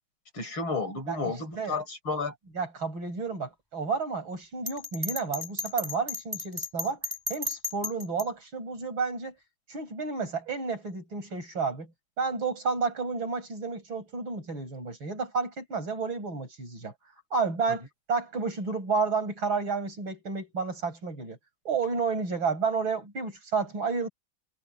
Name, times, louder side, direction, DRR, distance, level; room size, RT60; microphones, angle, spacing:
voice 1, 0.3-2.3 17.7-17.8, left 3 dB, 80° left, 7.1 m, -32 dB
voice 2, 1.1-1.8 2.5-7.0 7.3-9.3 9.7-11.9 12.2-16.9 17.3-21.4 21.6-24.1, right 4 dB, 75° right, 6.8 m, -31 dB
Bell, 4.7-8.3, left 2 dB, 10° right, 7.2 m, -34 dB
omnidirectional pair, 2.2 m